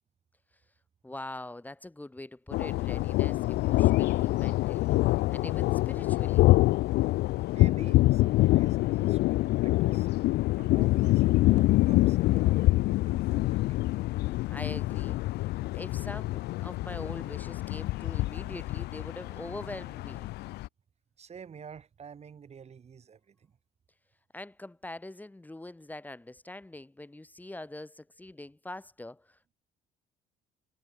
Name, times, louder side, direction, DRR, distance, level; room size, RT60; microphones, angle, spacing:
voice 1, 1.0-6.5 14.5-15.2 15.7-20.3 24.3-29.5, left 2 dB, 10° left, 5.3 m, -43 dB
sound 1, 2.5-20.7, left 18 dB, 75° left, 0.6 m, -26 dB
voice 2, 7.5-13.8 21.2-23.6, right 7 dB, 40° right, 6.4 m, -50 dB
cardioid pair, 110°, 17 cm